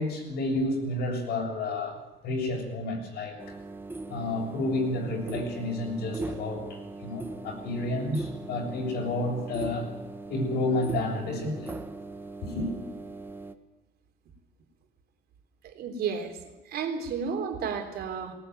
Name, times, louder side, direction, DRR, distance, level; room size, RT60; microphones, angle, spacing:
voice 1, 0.0-3.6 4.1-9.9 10.3-11.7 12.4-12.7, left 2 dB, 75° left, 1 dB, 7.0 m, -30 dB
sound 1, 3.4-13.5, right 2 dB, 10° right, 1.4 m, -40 dB
voice 2, 15.8-16.4 16.7-18.3, right 6 dB, 70° right, 4 dB, 3.6 m, -32 dB
19.0 x 19.0 x 9.2 m, 1.0 s
cardioid pair, 110°, 17 cm